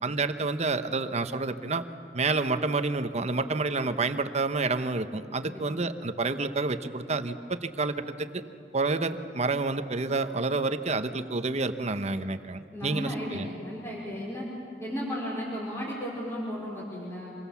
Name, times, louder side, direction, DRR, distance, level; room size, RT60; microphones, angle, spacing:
voice 1, 0.0-1.8 2.1-8.4 8.7-13.5, right 3 dB, 40° right, 10 dB, 1.0 m, -29 dB
voice 2, 12.7-14.5 14.8-17.3, equal, 15° left, -6 dB, 4.8 m, -34 dB
26.5 x 23.0 x 7.2 m, 2.8 s
head